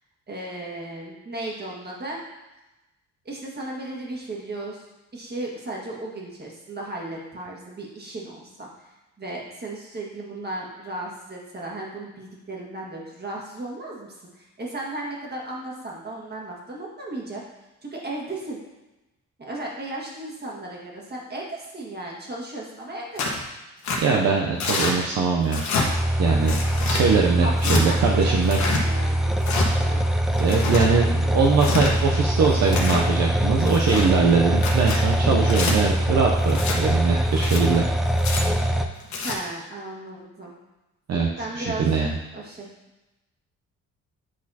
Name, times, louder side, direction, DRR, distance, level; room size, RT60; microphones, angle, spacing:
voice 1, 0.3-2.2 3.3-4.8 5.1-17.4 17.8-18.6 19.4-23.3 27.4-27.5 27.8-29.4 29.8-30.0 39.1-40.5 41.4-42.0 42.3-42.7, right 2 dB, 35° right, -3 dB, 1.7 m, -35 dB
Tearing, 23.2-23.4 23.8-24.0 24.6-24.9 25.5-25.9 26.5-27.0 27.6-27.8 28.4-28.8 29.4-29.7 30.3-30.9 31.5-31.9 32.5-33.0 33.6-34.1 34.6-35.0 35.5-35.7 36.5-36.8 37.3-37.6 38.2-38.4 39.0-39.4, left 4 dB, 70° left, 1.2 m, -27 dB
voice 2, 24.0-25.6 26.2-28.6 30.4-37.8 41.1-41.3 41.5-42.1, right 5 dB, 60° right, 0 dB, 0.7 m, -22 dB
sound 1, 25.9-38.9, right 1 dB, ahead, 0.4 m, -23 dB
8.6 x 4.1 x 2.8 m, 1.1 s
cardioid pair, 90°, 30 cm